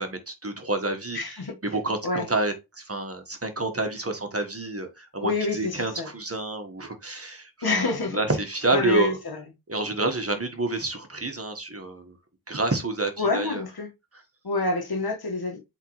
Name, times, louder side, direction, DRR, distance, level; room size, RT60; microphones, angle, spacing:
voice 1, 0.0-1.4 1.6-9.2 9.7-12.1 12.5-13.6, right 2 dB, 35° right, 1.5 m, -29 dB
voice 2, 1.1-1.5 2.0-2.3 5.2-6.1 7.6-8.2 8.7-9.5 13.2-13.9 14.4-15.6, left 3 dB, 70° left, 1.7 m, -27 dB
7.8 x 3.7 x 3.2 m
wide cardioid pair, 70°, 38 cm